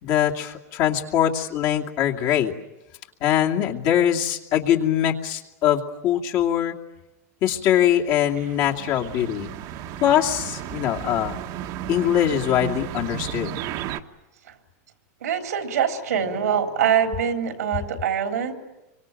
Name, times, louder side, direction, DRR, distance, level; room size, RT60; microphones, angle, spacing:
voice 1, 0.0-2.5 3.2-6.8 7.4-9.5 10.0-11.4 11.9-13.5, left 10 dB, 50° left, 0 dB, 2.6 m, -22 dB
sound 1, 8.1-14.0, right 11 dB, 50° right, 1.5 m, -34 dB
voice 2, 15.2-18.5, right 8 dB, 90° right, 5 dB, 3.7 m, -24 dB
26.0 x 24.5 x 9.1 m, 0.98 s
hypercardioid pair, 115°, 8 cm